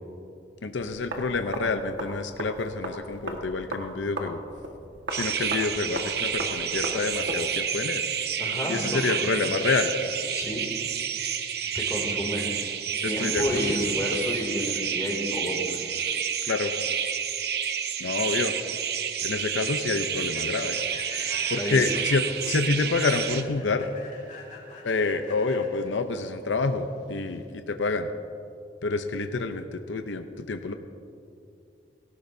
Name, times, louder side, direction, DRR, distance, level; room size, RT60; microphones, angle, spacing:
voice 1, 0.6-4.4 5.1-8.0 8.7-9.9 13.0-13.6 16.4-16.7 18.0-18.5 19.2-20.8 21.5-23.9 24.8-28.1 28.8-30.7, left 3 dB, 85° left, 8 dB, 0.6 m, -28 dB
sound 1, 0.8-7.4, right 1 dB, 80° right, 1.6 m, -37 dB
sound 2, 5.1-23.4, right 8 dB, 55° right, 0.7 m, -29 dB
voice 2, 8.4-9.2 10.3-10.6 11.6-12.5 13.0-15.9 21.6-21.9, equal, 15° left, -1 dB, 2.5 m, -30 dB
Human voice / Train, 18.9-27.5, left 3 dB, 40° left, 2.4 m, -48 dB
18.5 x 17.5 x 2.7 m, 2.5 s
head